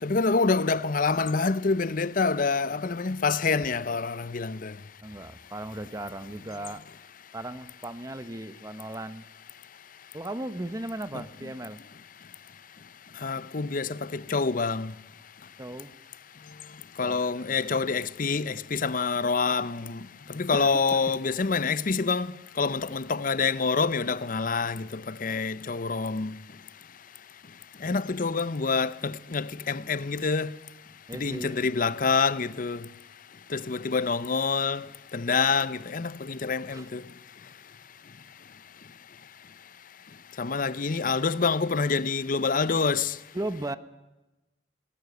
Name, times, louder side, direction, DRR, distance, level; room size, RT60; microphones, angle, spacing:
voice 1, 0.0-4.8 11.1-11.2 13.2-14.9 17.0-26.4 27.8-30.5 31.1-32.9 33.5-37.0 40.4-43.2, left 4 dB, 45° left, 0.7 m, -27 dB
voice 2, 5.0-6.8 7.3-9.3 10.1-11.8 15.6-15.9 17.0-17.8 20.5-21.0 27.8-28.0 31.1-31.6 36.7-36.9 43.3-43.8, right 1 dB, 20° right, 0.8 m, -37 dB
20.0 x 19.0 x 8.0 m
head